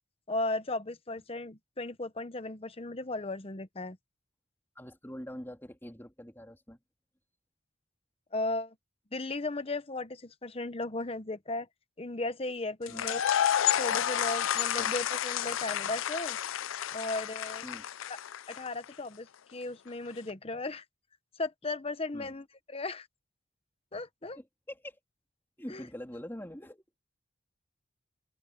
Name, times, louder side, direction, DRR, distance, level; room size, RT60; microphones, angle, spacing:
voice 1, 0.3-4.0 8.3-8.7 9.1-11.7 12.0-13.2 13.8-16.4 16.9-17.6 18.1-18.2 18.5-20.8 21.4-23.1 23.9-24.4 25.7-25.8, left 2 dB, 30° left, 0.9 m, -36 dB
voice 2, 4.7-6.8 12.9-13.2 14.8-14.9 17.6-17.9 22.1-22.4 24.4-25.0 25.6-27.0, equal, 10° left, 3.0 m, -44 dB
sound 1, 12.9-18.9, left 10 dB, 85° left, 0.5 m, -30 dB
head